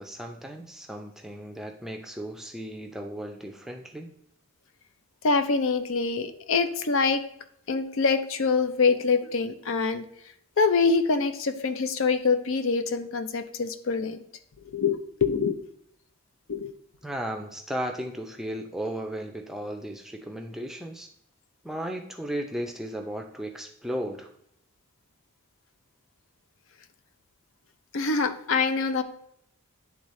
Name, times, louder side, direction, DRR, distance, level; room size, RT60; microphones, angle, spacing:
voice 1, 0.0-4.1 17.0-21.1 21.6-24.3, right 1 dB, ahead, 3 dB, 0.5 m, -35 dB
voice 2, 5.2-7.3 7.7-10.0 10.6-14.2 14.6-15.6 16.5-16.7 27.9-29.0, left 4 dB, 65° left, 10 dB, 0.5 m, -25 dB
10.0 x 3.6 x 3.1 m, 0.69 s
head